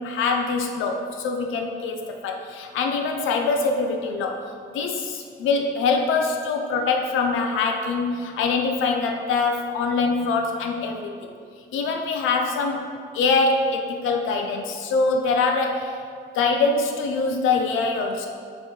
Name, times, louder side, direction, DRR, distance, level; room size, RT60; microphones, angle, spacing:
voice 1, 0.0-4.4 4.7-11.3 11.7-15.9 16.3-18.3, left 4 dB, 85° left, 3 dB, 0.6 m, -24 dB
7.1 x 3.5 x 4.5 m, 2.2 s
cardioid pair, 90°, 20 cm